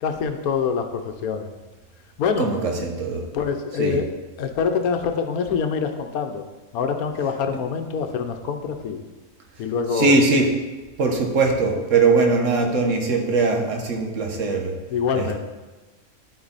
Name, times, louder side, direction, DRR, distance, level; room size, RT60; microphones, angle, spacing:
voice 1, 0.0-1.5 2.2-2.5 3.3-6.4 6.7-9.0 9.6-10.2 14.9-15.4, left 6 dB, 75° left, 6 dB, 1.2 m, -25 dB
voice 2, 2.4-3.2 3.8-4.0 9.9-10.5 11.0-14.8 15.1-15.4, right 3 dB, 60° right, 2 dB, 1.4 m, -21 dB
11.5 x 4.4 x 4.1 m, 1.2 s
omnidirectional pair, 1.5 m